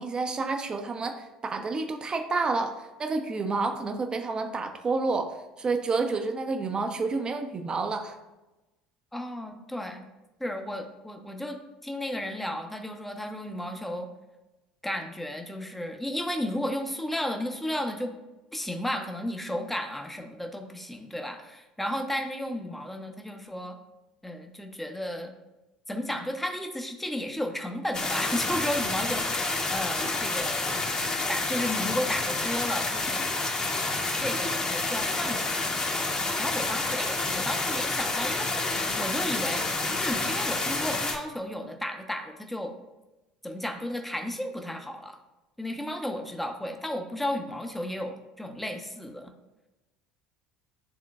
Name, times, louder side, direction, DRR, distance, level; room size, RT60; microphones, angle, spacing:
voice 1, 0.0-8.1, right 3 dB, 30° right, 6 dB, 0.7 m, -29 dB
voice 2, 9.1-10.1 10.4-14.1 14.8-18.1 18.5-23.8 24.2-25.3 25.9-30.7 31.3-33.3 34.2-39.6 40.0-42.7 43.4-45.2 45.6-49.3, left 1 dB, 5° left, 4 dB, 0.8 m, -33 dB
sound 1, 27.9-41.2, left 3 dB, 25° left, 1.1 m, -29 dB
10.5 x 3.7 x 2.4 m, 1.0 s
figure-of-eight pair, 65°, 3 cm